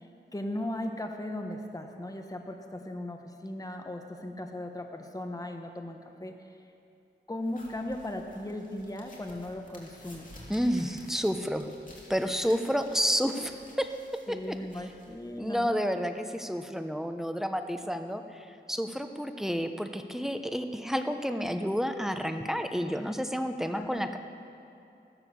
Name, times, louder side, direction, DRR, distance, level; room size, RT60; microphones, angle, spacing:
voice 1, 0.0-6.4 7.3-10.3 12.5-12.6 14.3-15.7 23.6-24.1, left 1 dB, 20° left, 4 dB, 1.2 m, -37 dB
sound 1, 7.4-15.6, left 1 dB, 45° left, 3.3 m, -53 dB
voice 2, 10.5-11.7 12.1-13.9 14.3-14.9 15.4-24.2, equal, ahead, 7 dB, 1.0 m, -30 dB
15.0 x 12.5 x 7.2 m, 2.6 s
wide cardioid pair, 70°, 19 cm